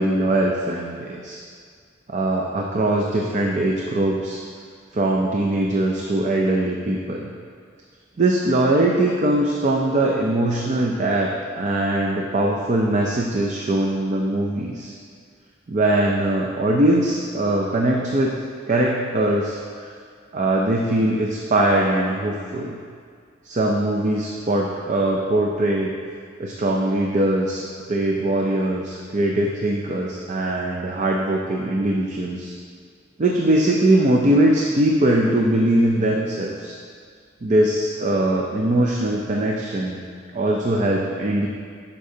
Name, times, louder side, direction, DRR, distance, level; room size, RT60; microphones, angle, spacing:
voice 1, 0.0-1.4 2.1-4.4 4.9-7.3 8.2-14.9 15.7-18.4 18.7-19.9 20.3-22.8 23.4-25.9 26.4-27.6 27.9-32.5 33.2-36.8 37.4-40.0 40.3-41.5, right 1 dB, 40° right, -1 dB, 0.5 m, -21 dB
11.0 x 5.4 x 2.8 m, 2.1 s
head